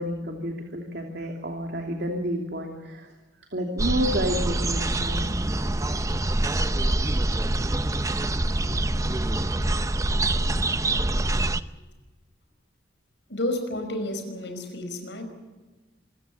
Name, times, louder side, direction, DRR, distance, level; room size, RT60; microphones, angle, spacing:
voice 1, 0.0-3.1 3.4-5.3, equal, 65° right, 2 dB, 2.8 m, -30 dB
sound 1, 3.8-11.6, right 2 dB, 20° right, 0.7 m, -25 dB
voice 2, 13.3-15.2, left 1 dB, 80° left, 7 dB, 5.1 m, -31 dB
26.5 x 15.5 x 7.5 m, 1.3 s
head